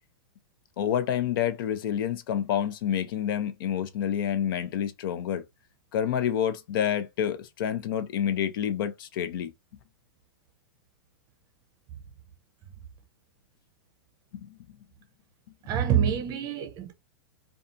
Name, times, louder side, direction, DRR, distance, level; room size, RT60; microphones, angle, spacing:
voice 1, 0.8-5.4 5.9-9.5 14.3-14.4, left 9 dB, 60° left, 0.5 m, -28 dB
voice 2, 15.6-16.9, right 9 dB, 30° right, 0.6 m, -26 dB
2.6 x 2.4 x 2.5 m
hypercardioid pair, 135°, 13 cm